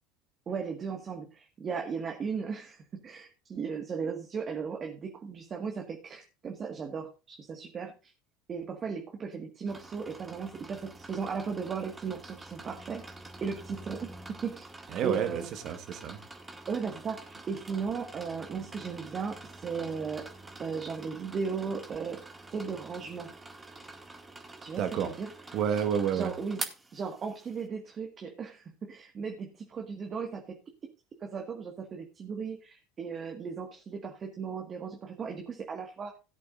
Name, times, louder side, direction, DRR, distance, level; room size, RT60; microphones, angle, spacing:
voice 1, 0.5-8.1 8.5-13.0 13.4-14.7 15.0-15.5 16.7-20.3 20.6-22.2 22.5-23.3 24.6-25.3 26.1-26.6 26.9-30.6 31.2-36.1, right 5 dB, 35° right, 1.8 m, -36 dB
sound 1, 9.7-27.6, right 2 dB, 15° right, 2.2 m, -46 dB
voice 2, 14.9-16.2 24.8-25.2 25.5-26.3, right 8 dB, 55° right, 1.6 m, -30 dB
17.0 x 8.4 x 2.6 m
hypercardioid pair, 75°, 0 cm